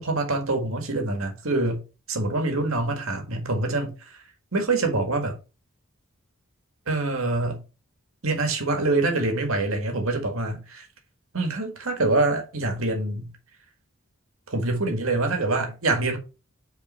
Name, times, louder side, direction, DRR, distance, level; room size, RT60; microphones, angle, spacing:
voice 1, 0.0-1.8 2.1-4.2 4.5-5.4 6.9-7.6 8.2-10.9 11.3-13.3 14.5-16.2, right 2 dB, 80° right, 1.8 m, -25 dB
5.2 x 4.5 x 5.5 m
head